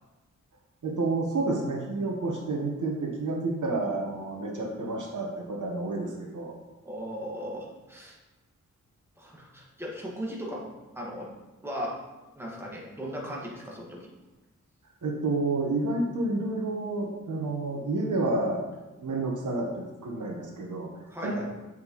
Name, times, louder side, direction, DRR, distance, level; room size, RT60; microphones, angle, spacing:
voice 1, 0.8-6.5 15.0-18.7 19.0-21.5, right 2 dB, 85° right, 0 dB, 1.2 m, -30 dB
voice 2, 6.8-8.2 9.2-10.7 10.9-11.3 11.6-12.0 12.3-14.1 21.1-21.5, equal, 10° right, -3 dB, 1.7 m, -37 dB
7.5 x 6.0 x 3.1 m, 1.1 s
wide cardioid pair, 100°, 30 cm